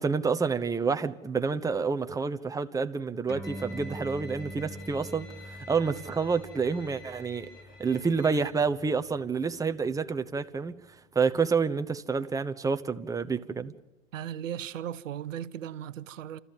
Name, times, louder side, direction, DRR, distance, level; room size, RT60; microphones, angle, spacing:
voice 1, 0.0-7.5 7.8-10.8 11.1-13.7, right 5 dB, 10° right, 0.9 m, -28 dB
sound 1, 3.3-10.1, equal, 10° left, 4.7 m, -45 dB
Bowed string instrument, 3.4-8.5, left 1 dB, 70° left, 4.4 m, -49 dB
voice 2, 14.1-16.4, right 10 dB, 80° right, 0.9 m, -37 dB
30.0 x 13.5 x 7.4 m
hypercardioid pair, 100°, 38 cm